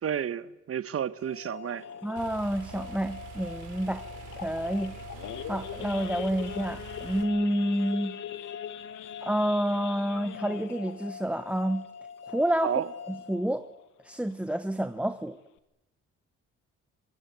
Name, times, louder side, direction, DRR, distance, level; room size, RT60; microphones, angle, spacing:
voice 1, 0.0-1.8 12.6-12.9, right 9 dB, 50° right, 1.3 m, -31 dB
sound 1, 1.2-14.2, left 6 dB, 55° left, 2.8 m, -45 dB
Idling / Accelerating revving vroom / Sawing, 1.7-12.8 13.2-13.4 13.6-13.7 14.2-14.5 14.9-15.0 15.2-15.6, left 11 dB, 80° left, 1.9 m, -43 dB
voice 2, 2.0-4.0 4.4-4.9 5.5-8.2 9.2-11.9 12.2-13.7 14.0-15.4, right 1 dB, 5° right, 1.1 m, -29 dB
sound 2, 2.2-7.2, right 8 dB, 85° right, 4.2 m, -45 dB
25.5 x 21.0 x 9.4 m
cardioid pair, 90°, 30 cm